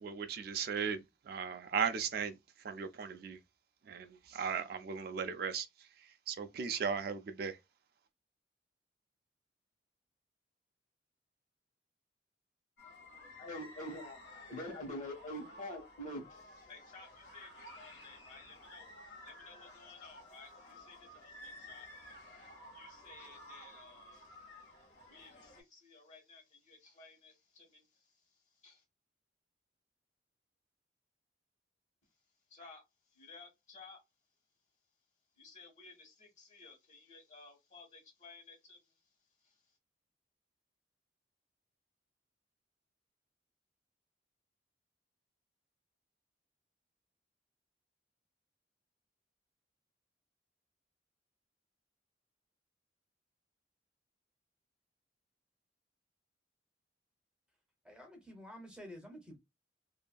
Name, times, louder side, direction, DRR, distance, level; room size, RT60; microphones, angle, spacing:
voice 1, 0.0-2.4 2.6-3.4 3.9-5.9 6.3-7.6, right 6 dB, 55° right, 0.3 m, -37 dB
sound 1, 12.8-25.6, left 1 dB, 70° left, 1.2 m, -54 dB
voice 2, 13.4-21.9 22.2-24.4 25.1-27.9 28.6-28.8 32.5-32.8 33.1-34.0 35.4-38.8 39.4-39.5, left 1 dB, 40° left, 1.2 m, -50 dB
voice 3, 57.8-59.4, equal, 5° right, 0.6 m, -50 dB
2.6 x 2.5 x 2.2 m
head